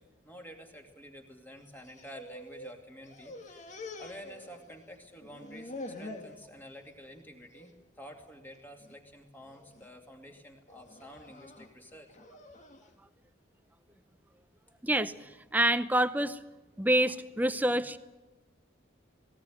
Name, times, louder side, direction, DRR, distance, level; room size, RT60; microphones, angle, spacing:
voice 1, 0.0-12.1 16.8-16.9, equal, 10° left, 2 dB, 2.4 m, -50 dB
sound 1, 1.7-2.8 3.0-4.9 5.2-6.4 6.8-7.2 7.5-7.7 8.5-8.9 9.5-9.9 10.7-12.9, left 2 dB, 35° left, 1.9 m, -46 dB
voice 2, 14.8-16.4 16.8-18.0, right 1 dB, 10° right, 13 dB, 0.7 m, -27 dB
19.0 x 19.0 x 9.3 m, 1.1 s
head